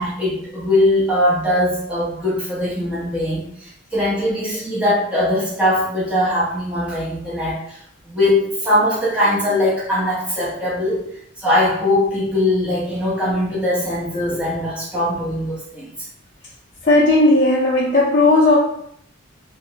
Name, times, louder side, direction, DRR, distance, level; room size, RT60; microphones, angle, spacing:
voice 1, 0.0-7.8 8.1-11.0 11.4-16.1, left 1 dB, 5° right, -7 dB, 0.8 m, -21 dB
voice 2, 16.8-18.6, left 2 dB, 40° left, -6 dB, 0.5 m, -15 dB
3.1 x 2.6 x 2.7 m, 0.69 s
head